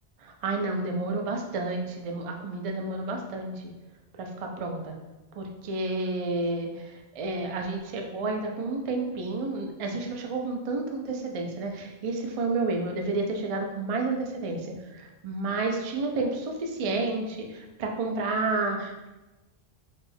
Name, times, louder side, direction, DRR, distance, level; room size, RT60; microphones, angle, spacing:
voice 1, 0.2-3.5 4.2-4.9 5.4-19.1, right 3 dB, 60° right, 2 dB, 0.3 m, -30 dB
4.0 x 2.2 x 3.3 m, 1.1 s
omnidirectional pair, 1.2 m